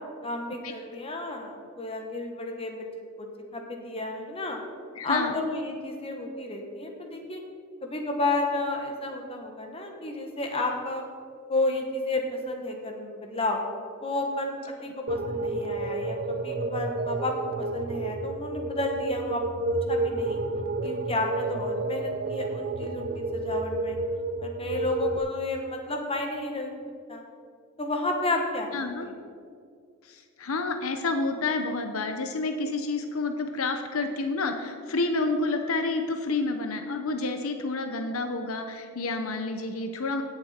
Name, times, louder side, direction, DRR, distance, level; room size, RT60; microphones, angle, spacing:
voice 1, 0.2-2.9 3.2-4.6 5.0-7.4 7.8-11.0 11.5-13.6 14.0-19.6 19.9-20.4 20.8-24.0 24.4-26.8 27.1-27.2 27.8-28.7 29.0-29.1, left 2 dB, 25° left, 2 dB, 1.4 m, -31 dB
voice 2, 5.0-5.3 28.7-29.1 30.1-40.2, left 3 dB, 70° left, 6 dB, 0.8 m, -29 dB
sound 1, 15.1-25.2, right 2 dB, 45° right, 0.6 m, -30 dB
17.0 x 7.0 x 4.4 m, 2.2 s
head